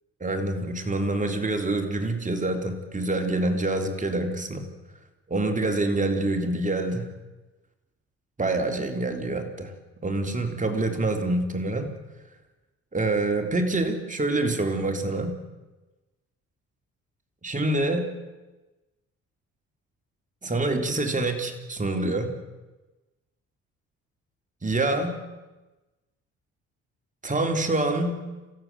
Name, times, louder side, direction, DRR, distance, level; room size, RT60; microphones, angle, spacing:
voice 1, 0.2-4.6 5.3-7.1 8.4-9.7 10.0-11.9 12.9-15.4 17.4-18.1 20.4-22.3 24.6-25.2 27.2-28.2, right 2 dB, 25° right, 4 dB, 3.7 m, -26 dB
27.5 x 16.5 x 7.6 m, 1.1 s
cardioid pair, 90°, 30 cm